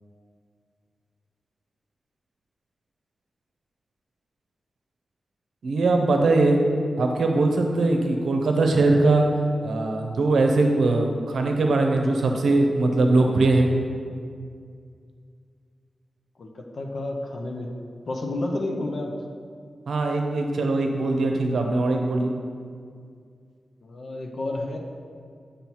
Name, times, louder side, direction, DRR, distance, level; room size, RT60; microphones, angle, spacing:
voice 1, 5.6-6.6 7.0-9.3 9.6-13.7 19.9-22.3, right 2 dB, 85° right, 3 dB, 0.7 m, -21 dB
voice 2, 16.4-17.7 18.1-19.1 23.8-24.8, left 2 dB, 55° left, 1 dB, 0.6 m, -30 dB
6.9 x 5.5 x 3.0 m, 2.2 s
wide cardioid pair, 150°, 0 cm